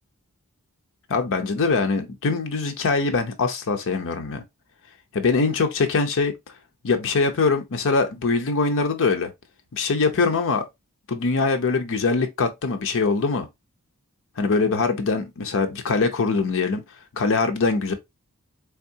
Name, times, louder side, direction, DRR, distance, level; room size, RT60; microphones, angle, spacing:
voice 1, 1.1-4.4 5.1-6.3 6.8-9.3 9.7-10.6 11.1-13.5 14.4-16.8 17.1-17.9, left 4 dB, 60° left, 0.6 m, -22 dB
3.6 x 3.5 x 2.7 m
head